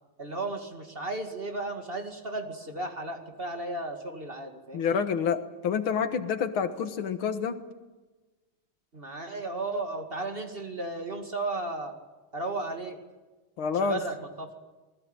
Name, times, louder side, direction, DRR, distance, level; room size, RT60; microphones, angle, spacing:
voice 1, 0.2-5.0 8.9-11.9 12.3-13.0 13.8-14.5, right 2 dB, 25° right, 4 dB, 2.4 m, -34 dB
voice 2, 4.7-7.6 13.6-14.0, left 6 dB, 90° left, 9 dB, 2.3 m, -28 dB
27.5 x 20.5 x 9.1 m, 1.2 s
omnidirectional pair, 2.2 m